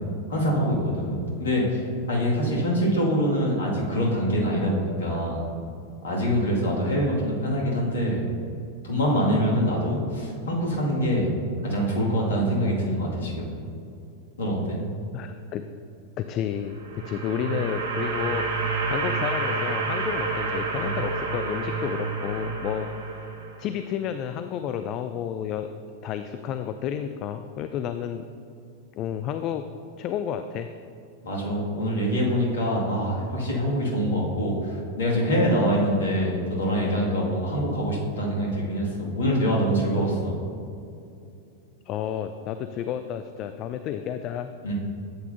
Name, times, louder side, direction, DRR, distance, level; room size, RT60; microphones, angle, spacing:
voice 1, 0.3-1.8 2.1-5.4 6.0-8.2 8.8-11.3 11.6-13.5 14.4-14.8 31.2-40.4 44.6-44.7, equal, 65° left, -3 dB, 2.1 m, -24 dB
voice 2, 15.1-15.6 16.2-22.9 23.6-25.7 26.0-28.3 29.0-29.6 30.0-30.7 35.4-35.5 41.9-44.5, left 9 dB, 35° left, 9 dB, 0.3 m, -31 dB
sound 1, 16.6-23.7, right 3 dB, 65° right, 1.2 m, -29 dB
11.5 x 8.3 x 2.7 m, 2.6 s
figure-of-eight pair, 90°, 0 cm